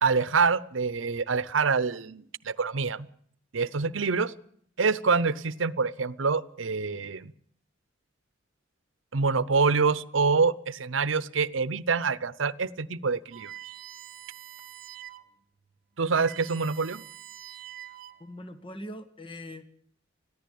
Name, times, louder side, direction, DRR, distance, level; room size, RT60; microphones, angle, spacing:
voice 1, 0.0-3.1 3.5-4.3 4.8-7.3 9.1-13.5 16.0-17.0, right 4 dB, 80° right, 18 dB, 0.8 m, -26 dB
sound 1, 13.3-15.3 15.7-15.8 16.0-18.4, right 12 dB, 50° right, 1.3 m, -45 dB
voice 2, 18.2-19.6, left 1 dB, 25° left, 11 dB, 1.5 m, -41 dB
21.0 x 14.5 x 8.5 m, 0.64 s
head